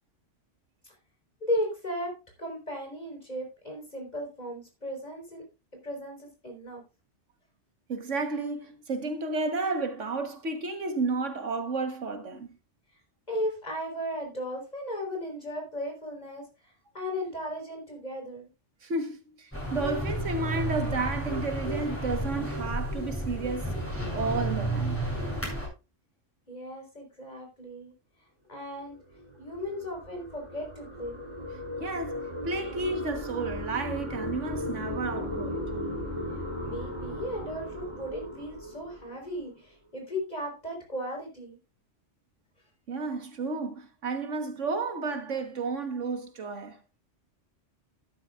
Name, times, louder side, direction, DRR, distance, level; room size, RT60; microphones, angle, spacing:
voice 1, 1.4-2.1 2.4-5.4 5.8-6.8 13.3-16.4 16.9-18.5 26.5-27.9 28.5-29.0 29.4-31.2 36.6-41.6, equal, 35° left, 4.7 m, -36 dB
voice 2, 7.9-12.6 18.8-23.7 24.1-25.0 31.8-35.6 42.9-46.8, right 3 dB, 80° right, 1.8 m, -32 dB
sound 1, 19.5-25.7, right 1 dB, 10° left, 7.7 m, -31 dB
sound 2, 28.9-39.5, equal, 25° right, 3.7 m, -37 dB
12.5 x 11.5 x 2.5 m
omnidirectional pair, 1.2 m